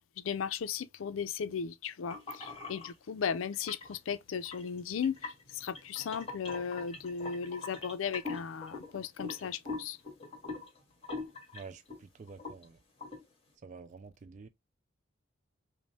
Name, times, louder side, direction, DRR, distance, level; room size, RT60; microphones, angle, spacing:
voice 1, 0.2-5.2 5.5-10.0, left 7 dB, 80° left, 0.4 m, -36 dB
sound 1, 2.1-2.9 3.5-4.0 4.5-12.0 12.3-12.6 13.0-13.2, left 3 dB, 30° left, 1.7 m, -42 dB
voice 2, 11.5-12.8 13.6-14.5, right 4 dB, 35° right, 0.3 m, -49 dB
5.2 x 2.0 x 3.2 m
head